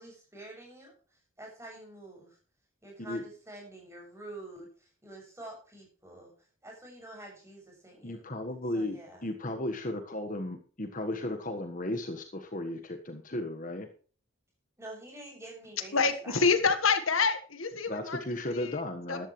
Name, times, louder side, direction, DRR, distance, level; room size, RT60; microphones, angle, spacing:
voice 1, 0.0-2.4 2.8-8.2 8.7-9.3 14.8-15.9 16.2-16.5, right 1 dB, 15° right, 0 dB, 6.9 m, -47 dB
voice 2, 8.0-13.9 17.9-19.3, left 1 dB, 40° left, 6 dB, 1.4 m, -35 dB
voice 3, 15.9-18.2 18.5-18.7 19.1-19.3, left 4 dB, 75° left, 9 dB, 1.6 m, -27 dB
14.0 x 11.5 x 3.2 m, 0.39 s
head